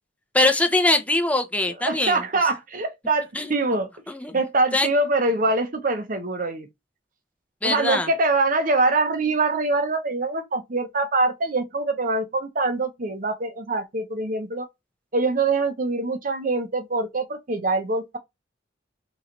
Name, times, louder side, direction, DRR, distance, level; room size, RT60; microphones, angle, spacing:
voice 1, 0.3-2.2 3.3-3.5 4.1-4.4 4.7-4.9 7.6-8.1, left 2 dB, 5° left, 0.6 m, -22 dB
voice 2, 1.8-3.9 4.3-6.7 7.6-14.7 15.1-18.2, right 3 dB, 45° right, 0.8 m, -24 dB
3.1 x 3.0 x 3.8 m
head